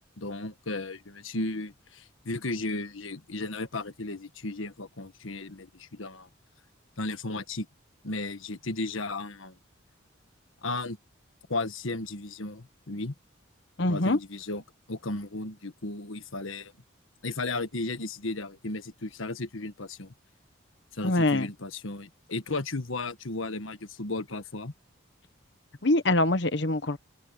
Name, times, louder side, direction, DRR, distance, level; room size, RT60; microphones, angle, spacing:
voice 1, 0.2-6.3 7.0-7.7 8.0-9.6 10.6-11.0 11.5-13.1 13.9-14.6 14.9-16.7 17.2-20.1 20.9-24.7, left 2 dB, 80° left, 1.5 m, -34 dB
voice 2, 13.8-14.2 21.0-21.5 25.8-27.0, left 2 dB, 60° left, 1.2 m, -24 dB
head